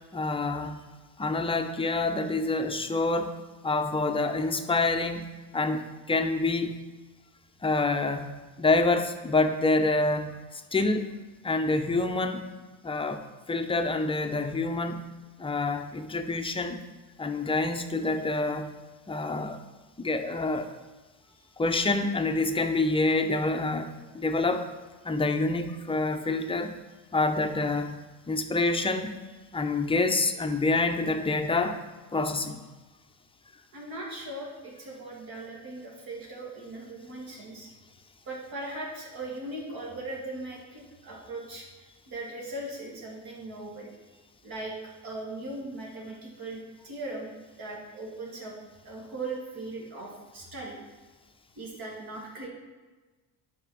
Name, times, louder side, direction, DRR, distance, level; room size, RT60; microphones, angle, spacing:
voice 1, 0.1-0.8 1.2-3.4 3.6-6.8 7.6-8.3 8.6-11.1 11.4-12.5 12.8-15.0 15.4-16.8 17.2-18.7 19.1-19.6 20.0-20.7 21.6-24.7 25.0-26.7 27.1-28.0 28.3-29.1 29.5-31.8 32.1-32.7, left 3 dB, 15° left, 6 dB, 0.5 m, -27 dB
voice 2, 33.7-37.7 38.3-43.9 44.4-48.6 48.8-50.8 51.6-52.5, right 2 dB, 60° right, -2 dB, 2.2 m, -39 dB
5.6 x 5.0 x 6.1 m, 1.2 s
supercardioid pair, 100°, 41 cm